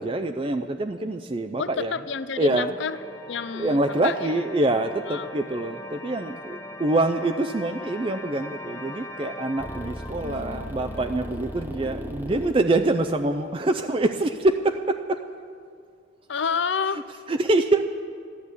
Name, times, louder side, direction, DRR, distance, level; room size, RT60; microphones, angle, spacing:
voice 1, 0.0-2.0 2.4-2.8 3.5-15.2 17.3-17.8, right 2 dB, 25° right, 7 dB, 0.4 m, -25 dB
voice 2, 1.6-2.9 3.3-4.3 5.1-5.3 10.2-11.0 16.3-17.0, left 6 dB, 65° left, 14 dB, 0.5 m, -30 dB
sound 1, 2.1-13.1, left 1 dB, 15° left, 0.7 m, -42 dB
sound 2, 9.6-14.7, equal, 10° right, 0.9 m, -37 dB
13.5 x 12.0 x 8.3 m, 2.2 s
head